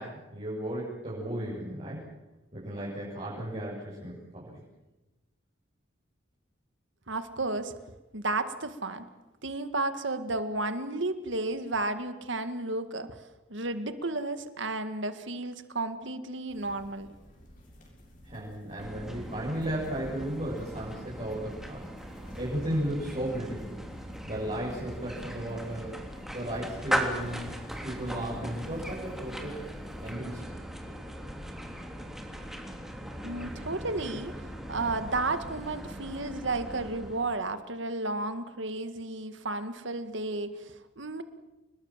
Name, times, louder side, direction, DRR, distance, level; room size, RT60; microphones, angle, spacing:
voice 1, 0.0-2.1 2.5-4.6 18.2-23.8 24.2-25.9 26.3-27.5 27.8-29.6 30.0-30.5, right 1 dB, 30° right, -7 dB, 7.0 m, -35 dB
voice 2, 7.1-7.8 8.1-9.1 9.4-13.1 13.5-17.1 33.2-41.2, right 2 dB, 65° right, 10 dB, 1.9 m, -33 dB
sound 1, 16.5-30.1, equal, 40° left, 7.1 m, -54 dB
sound 2, 18.8-37.4, equal, ahead, 3.2 m, -38 dB
29.5 x 20.5 x 7.5 m, 1.1 s
head